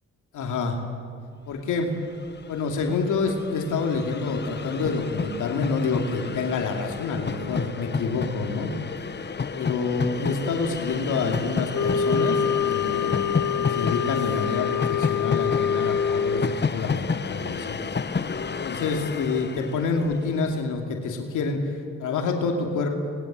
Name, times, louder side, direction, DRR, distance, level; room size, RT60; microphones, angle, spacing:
voice 1, 0.3-0.8 1.5-1.9 2.5-8.7 9.5-17.8 18.6-23.0, left 4 dB, 85° left, 2 dB, 2.6 m, -27 dB
Train, 1.9-2.0 2.1-20.6, left 5 dB, 35° left, 1.2 m, -31 dB
sound 1, 11.7-16.6, left 7 dB, 65° left, 1.3 m, -25 dB
25.0 x 21.0 x 7.6 m, 2.3 s
cardioid pair, 70°, 30 cm